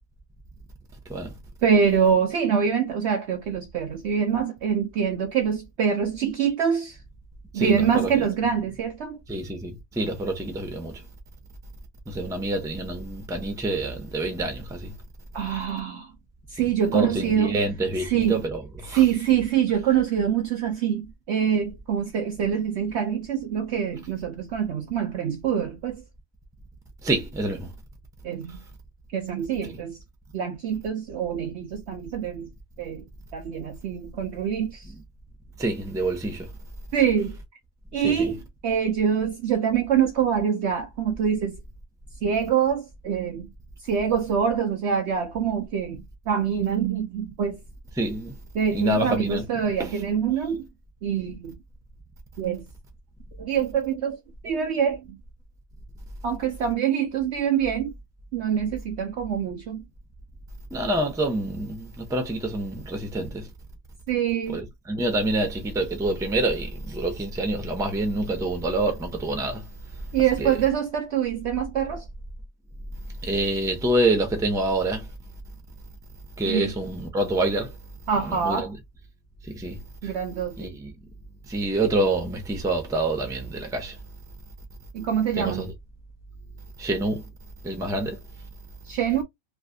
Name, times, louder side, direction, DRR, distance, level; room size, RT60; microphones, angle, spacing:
voice 1, 1.6-7.0 7.5-9.2 15.3-16.1 16.5-17.6 18.0-18.5 18.8-26.0 28.2-28.6 29.1-30.0 30.3-32.5 32.8-33.1 33.3-34.9 36.9-37.4 37.9-41.6 42.2-43.5 43.8-47.6 48.5-50.7 51.0-51.6 52.4-52.7 53.4-54.2 54.4-55.2 56.2-57.9 58.3-59.8 64.1-64.6 70.1-72.0 76.5-76.8 78.1-78.7 80.0-80.7 84.9-85.7 88.9-89.2, right 8 dB, 65° right, 0.7 m, -25 dB
voice 2, 9.3-11.0 12.1-14.9 16.9-19.0 27.0-27.7 35.6-36.5 38.0-38.3 48.0-48.3 48.7-49.4 49.8-49.9 60.7-63.4 64.5-64.6 64.9-69.6 70.4-70.5 73.2-75.1 76.4-77.7 78.3-78.7 79.5-79.8 80.6-80.9 81.5-83.9 85.4-85.7 86.8-87.2 87.6-88.2, right 2 dB, 5° right, 0.6 m, -26 dB
3.1 x 2.7 x 2.6 m
omnidirectional pair, 1.5 m